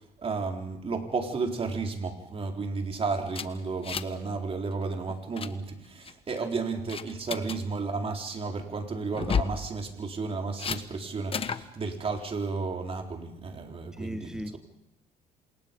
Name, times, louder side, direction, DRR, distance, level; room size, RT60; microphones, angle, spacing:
voice 1, 0.2-14.3, right 4 dB, 35° right, 3.9 m, -33 dB
sound 1, 3.3-4.2 4.5-4.7 5.1-5.5 6.1-6.4 6.9-7.6 9.1-9.6 10.6-10.8 11.3-11.6, left 6 dB, 35° left, 1.3 m, -31 dB
voice 2, 13.9-14.6, equal, 5° right, 1.4 m, -38 dB
28.5 x 27.0 x 5.3 m
cardioid pair, 110°, 17 cm